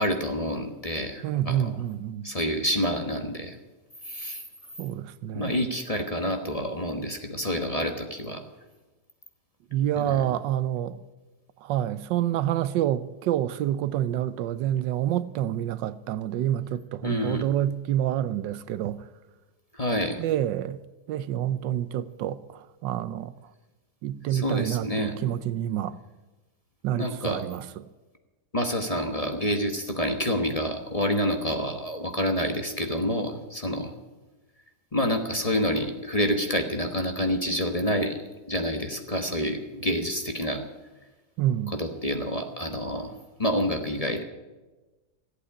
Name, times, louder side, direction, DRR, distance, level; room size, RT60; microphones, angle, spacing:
voice 1, 0.0-1.7 2.2-3.5 4.1-4.4 5.3-8.4 9.9-10.3 17.0-17.4 19.7-20.2 24.3-25.1 27.0-27.4 28.5-33.9 34.9-38.2 38.5-40.6 41.8-43.1 43.4-44.2, equal, 25° left, 1.1 m, -28 dB
voice 2, 1.2-2.3 4.8-5.5 9.7-11.0 11.6-19.1 20.2-20.8 21.1-23.3 24.0-26.0 26.8-27.7 41.4-41.8, right 11 dB, 90° right, 1.4 m, -28 dB
14.5 x 8.4 x 9.8 m
omnidirectional pair, 1.9 m